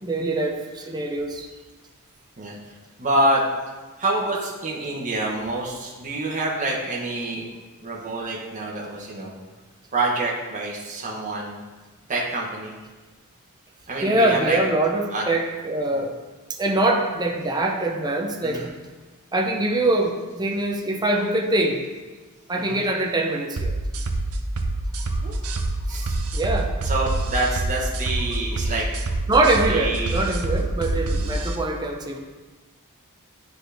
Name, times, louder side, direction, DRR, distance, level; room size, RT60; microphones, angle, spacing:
voice 1, 0.0-1.5 14.0-16.1 16.5-18.6 19.3-21.8 22.5-23.8 25.1-25.2 25.6-25.7 26.0-26.7 29.3-32.2, right 2 dB, 20° right, 1 dB, 0.6 m, -23 dB
voice 2, 2.4-2.7 3.0-3.4 4.0-7.5 7.8-9.3 9.9-11.6 12.1-12.7 13.9-14.6 15.1-15.2 15.9-16.0 18.4-18.7 22.5-22.9 25.2-25.3 25.9-26.1 26.8-28.9 29.7-30.2 31.2-31.3, right 2 dB, 35° right, -3 dB, 1.0 m, -27 dB
sound 1, 23.6-31.5, right 2 dB, 75° right, 0.6 m, -26 dB
9.8 x 4.0 x 3.4 m, 1.3 s
head